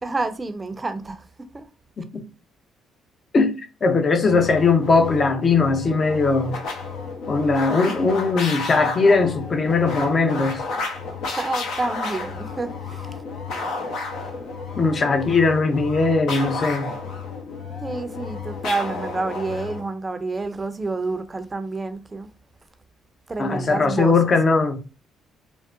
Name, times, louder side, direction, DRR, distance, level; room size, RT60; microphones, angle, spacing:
voice 1, 0.0-1.3 1.5-1.7 11.3-13.2 17.8-22.3 23.3-24.3, right 3 dB, 25° right, 0.5 m, -29 dB
voice 2, 3.3-6.5 7.3-10.6 14.7-16.9 23.4-24.8, left 4 dB, 45° left, 0.7 m, -19 dB
sound 1, 4.2-19.9, left 4 dB, 75° left, 0.8 m, -32 dB
3.7 x 2.1 x 2.4 m
supercardioid pair, 65°, 0 cm